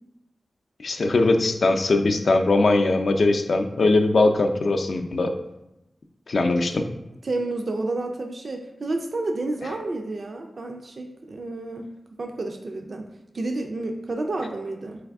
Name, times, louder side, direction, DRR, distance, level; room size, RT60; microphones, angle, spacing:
voice 1, 0.8-5.3 6.3-6.9, left 2 dB, 65° left, 5 dB, 0.4 m, -20 dB
voice 2, 7.2-11.9 12.2-13.1 13.3-15.0, right 2 dB, 55° right, 3 dB, 0.3 m, -30 dB
4.0 x 3.4 x 3.4 m, 0.91 s
wide cardioid pair, 85°, 0 cm